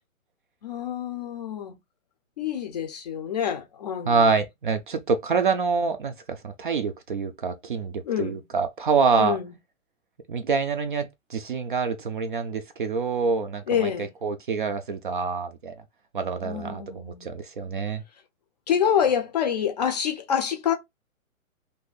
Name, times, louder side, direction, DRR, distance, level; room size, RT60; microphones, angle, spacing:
voice 1, 0.6-1.8 2.4-4.3 8.0-8.4 9.2-9.4 13.7-14.1 16.4-17.4 18.7-20.7, left 8 dB, 30° left, 0.5 m, -27 dB
voice 2, 4.1-9.4 10.3-15.7 16.1-18.0, right 5 dB, 40° right, 0.4 m, -26 dB
2.7 x 2.5 x 3.8 m
hypercardioid pair, 145°, 42 cm